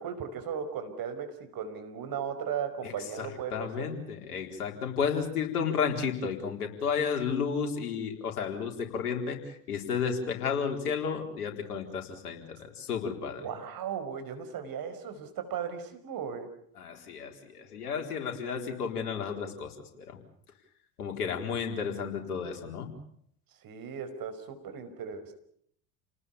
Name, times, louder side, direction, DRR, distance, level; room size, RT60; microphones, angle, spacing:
voice 1, 0.0-3.9 13.4-16.5 23.6-25.3, right 7 dB, 50° right, 8 dB, 5.3 m, -36 dB
voice 2, 3.2-13.4 16.8-20.2 21.0-22.9, left 6 dB, 80° left, 3 dB, 4.4 m, -32 dB
29.5 x 19.5 x 7.1 m, 0.68 s
hypercardioid pair, 70°, 45 cm